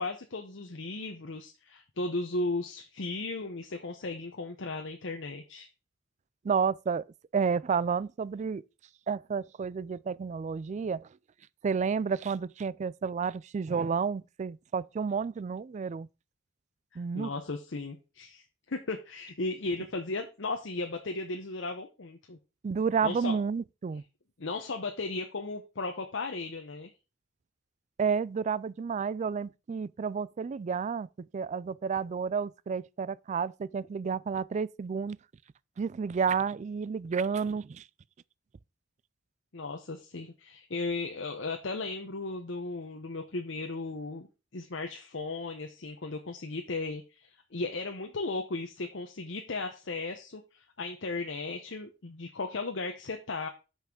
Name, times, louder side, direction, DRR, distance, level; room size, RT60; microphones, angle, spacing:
voice 1, 0.0-5.7 17.1-22.4 23.0-23.4 24.4-26.9 39.5-44.3 44.5-53.5, left 3 dB, 70° left, 0.9 m, -36 dB
voice 2, 6.4-7.0 7.3-8.6 9.1-11.1 11.6-16.1 17.0-17.3 22.6-24.0 28.0-35.2 35.8-37.8, right 6 dB, 35° right, 0.3 m, -31 dB
5.9 x 5.7 x 6.4 m
head